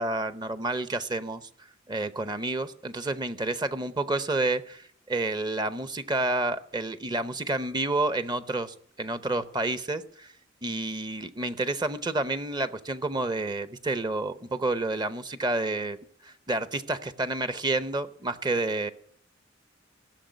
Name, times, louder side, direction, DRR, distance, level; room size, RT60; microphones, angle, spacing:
voice 1, 0.0-1.5 1.9-10.3 10.6-16.0 16.2-18.9, right 2 dB, 25° right, 12 dB, 0.7 m, -29 dB
16.0 x 6.9 x 9.2 m, 0.64 s
head